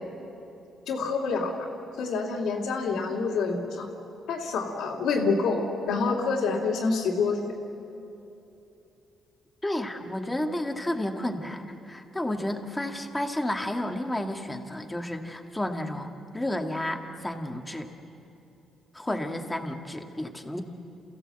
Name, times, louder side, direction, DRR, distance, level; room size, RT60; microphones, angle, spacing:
voice 1, 0.9-1.7 2.0-3.9 4.3-7.4 19.1-19.2, left 4 dB, 85° left, -4 dB, 2.8 m, -27 dB
voice 2, 9.6-17.9 18.9-20.6, left 1 dB, 10° left, 3 dB, 1.9 m, -31 dB
28.0 x 15.5 x 7.8 m, 2.9 s
cardioid pair, 90°, 0 cm